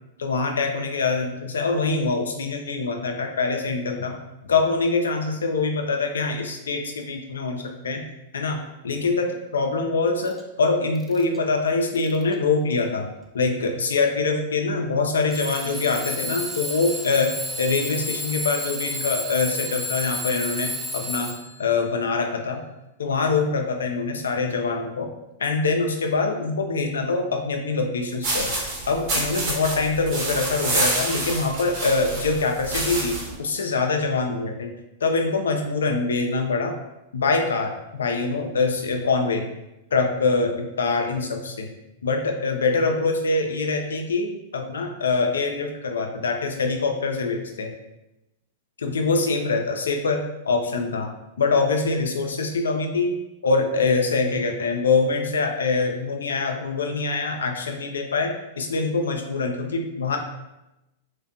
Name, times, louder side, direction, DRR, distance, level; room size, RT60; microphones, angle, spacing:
voice 1, 0.2-4.1 4.4-8.0 8.3-9.3 9.5-13.1 13.3-17.3 17.6-21.3 21.6-22.6 23.0-25.1 25.4-28.5 28.9-34.7 35.0-36.7 37.1-39.5 39.9-41.7 42.0-47.7 48.8-51.1 51.4-53.1 53.4-58.3 58.6-60.2, left 4 dB, 80° left, 4 dB, 0.3 m, -24 dB
Alarm / Clock, 10.3-10.4 10.9-11.4 11.9-12.3 13.2-13.3 15.3-21.7, equal, 15° right, 0.3 m, -31 dB
sound 1, 28.2-33.3, right 2 dB, 45° right, 0.9 m, -27 dB
2.4 x 2.1 x 2.5 m, 0.95 s
hypercardioid pair, 105°, 0 cm